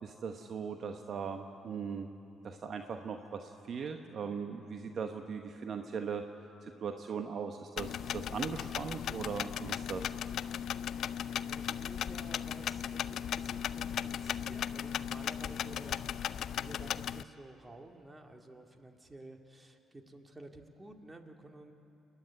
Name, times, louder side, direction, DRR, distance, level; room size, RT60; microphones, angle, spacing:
voice 1, 0.0-2.1 2.4-6.2 6.6-10.1, right 6 dB, 55° right, 6 dB, 1.0 m, -39 dB
sound 1, 7.8-17.2, left 9 dB, 65° left, 0.4 m, -37 dB
voice 2, 11.4-16.1 16.5-21.7, right 2 dB, 25° right, 4 dB, 2.2 m, -52 dB
28.0 x 10.0 x 9.7 m, 2.8 s
hypercardioid pair, 50°, 0 cm